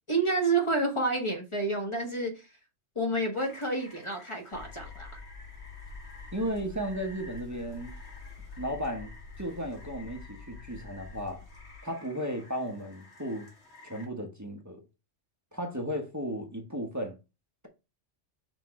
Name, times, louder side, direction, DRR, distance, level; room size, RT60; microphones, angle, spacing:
voice 1, 0.1-2.5 2.9-5.2, right 2 dB, 25° left, 1.5 m, -29 dB
Rain, 3.4-14.0, left 2 dB, 65° left, 2.1 m, -53 dB
sound 1, 4.5-11.8, left 4 dB, 50° left, 1.1 m, -47 dB
voice 2, 6.3-7.9 8.6-11.4 11.8-13.5 13.8-14.8 15.5-17.2, equal, 15° right, 1.1 m, -35 dB
6.1 x 3.7 x 4.7 m
omnidirectional pair, 1.2 m